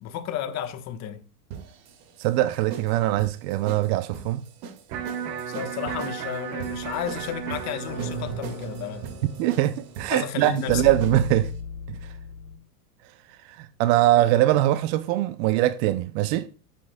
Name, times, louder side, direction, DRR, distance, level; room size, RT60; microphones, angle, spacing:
voice 1, 0.0-1.2 5.5-9.1 10.1-10.9, left 10 dB, 35° left, 1.2 m, -33 dB
sound 1, 1.5-11.4, right 7 dB, 60° right, 2.1 m, -40 dB
voice 2, 2.2-4.4 9.4-11.5 11.9-12.1 13.4-16.5, right 15 dB, 40° right, 0.6 m, -22 dB
Electric guitar, 4.9-11.0, right 8 dB, 75° right, 1.5 m, -36 dB
sound 2, 6.7-12.6, left 2 dB, 65° left, 3.0 m, -37 dB
12.0 x 7.7 x 2.2 m
hypercardioid pair, 115°, 49 cm